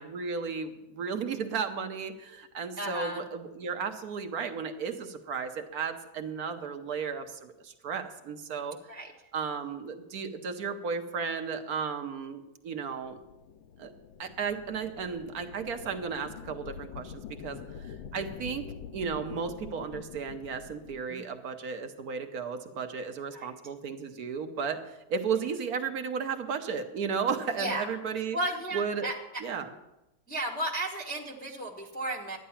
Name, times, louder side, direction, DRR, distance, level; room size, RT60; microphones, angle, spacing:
voice 1, 0.0-9.0 9.3-13.2 13.8-13.9 14.2-17.1 17.4-18.6 18.9-24.8 25.1-28.4 28.7-29.1 29.4-29.7, right 6 dB, 55° right, 7 dB, 1.2 m, -34 dB
voice 2, 2.8-3.3 8.9-9.1 21.1-21.3 23.3-23.5 27.6-27.9 28.3-29.4 30.3-32.4, right 1 dB, 5° left, -3 dB, 0.8 m, -34 dB
sound 1, 13.0-21.1, left 7 dB, 75° left, 1.4 m, -45 dB
12.5 x 9.9 x 5.7 m, 0.93 s
omnidirectional pair, 2.4 m